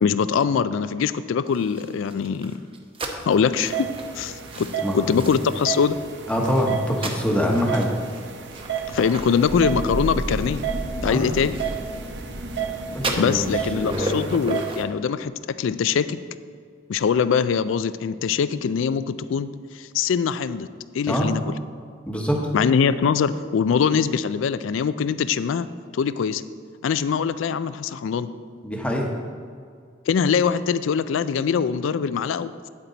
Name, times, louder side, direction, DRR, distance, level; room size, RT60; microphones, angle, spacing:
voice 1, 0.0-2.5 3.3-3.9 4.1-4.7 4.9-6.0 8.9-10.6 11.0-11.6 13.2-15.3 15.6-16.2 16.9-19.5 19.7-20.7 20.9-21.4 22.5-25.7 25.9-26.4 26.8-28.3 30.1-32.7, left 6 dB, 70° left, 14 dB, 0.3 m, -22 dB
sound 1, 1.5-5.8 6.3-12.6 12.9-14.8, right 2 dB, 30° right, 0.8 m, -36 dB
sound 2, 3.6-14.8, right 8 dB, 60° right, 0.8 m, -33 dB
voice 2, 4.8-5.2 6.3-7.9 11.0-11.3 12.9-13.5 13.7-14.3 21.1-21.3 22.1-22.4 28.6-29.1, equal, 5° left, 0 dB, 1.0 m, -24 dB
Thunder / Rain, 8.6-14.3, right 1 dB, 80° right, 1.2 m, -33 dB
8.8 x 8.7 x 4.0 m, 2.1 s
head